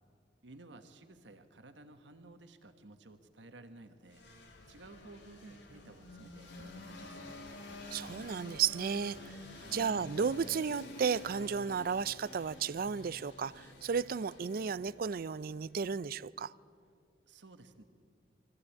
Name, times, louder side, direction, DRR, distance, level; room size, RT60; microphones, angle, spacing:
voice 1, 0.4-4.2 4.7-7.4 9.5-9.9 17.3-17.8, right 2 dB, 85° right, 1.2 m, -55 dB
sound 1, 4.1-15.8, left 1 dB, 85° left, 2.7 m, -50 dB
voice 2, 7.9-9.4 9.7-16.5, right 6 dB, 55° right, 0.4 m, -34 dB
23.5 x 14.5 x 8.5 m
head